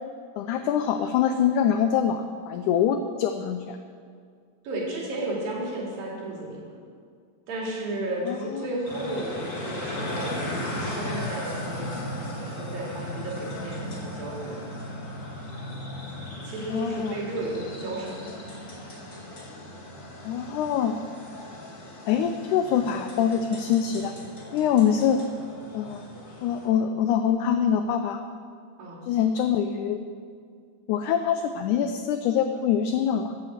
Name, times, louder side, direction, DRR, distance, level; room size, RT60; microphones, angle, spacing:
voice 1, 0.4-3.8 8.3-8.7 16.7-17.2 20.2-21.0 22.1-24.1 24.5-25.2 25.7-26.1 26.4-28.2 29.1-30.1 30.9-33.3, left 8 dB, 80° left, 8 dB, 1.8 m, -24 dB
voice 2, 4.6-6.7 7.5-10.3 10.6-14.7 16.4-18.2 28.8-29.0, right 1 dB, 90° right, -3 dB, 4.4 m, -33 dB
sound 1, 8.8-26.7, left 1 dB, 30° left, 1.9 m, -37 dB
14.5 x 8.1 x 7.4 m, 2.2 s
omnidirectional pair, 4.0 m